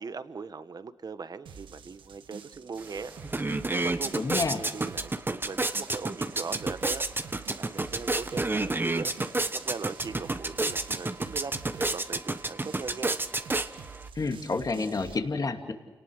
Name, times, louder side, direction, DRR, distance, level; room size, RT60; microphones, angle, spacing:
voice 1, 0.0-3.4 3.7-9.1 9.5-13.2, right 5 dB, 50° right, 12 dB, 1.3 m, -40 dB
sound 1, 1.5-15.2, right 6 dB, 90° right, 1.4 m, -47 dB
sound 2, 2.8-2.9 3.2-14.1, right 2 dB, 25° right, 1.3 m, -30 dB
voice 2, 4.1-4.6 14.1-15.7, left 3 dB, 50° left, 5 dB, 2.6 m, -29 dB
29.5 x 19.0 x 6.5 m, 1.2 s
cardioid pair, 55°, 8 cm